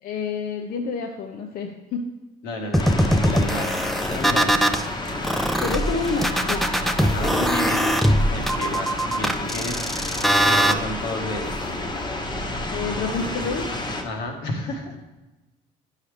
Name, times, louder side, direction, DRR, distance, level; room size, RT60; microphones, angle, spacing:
voice 1, 0.0-2.1 5.6-6.7 7.2-7.9 12.7-13.6, left 4 dB, 60° left, 3 dB, 0.7 m, -29 dB
voice 2, 2.4-3.8 4.1-4.6 7.0-7.8 8.3-11.5 14.0-15.0, left 2 dB, 85° left, 2 dB, 1.5 m, -32 dB
sound 1, 2.7-4.8 5.2-10.7, equal, ahead, 0.4 m, -21 dB
sound 2, 2.8-14.0, left 2 dB, 25° left, 1.0 m, -30 dB
10.0 x 5.7 x 3.3 m, 1.1 s
cardioid pair, 110°, 17 cm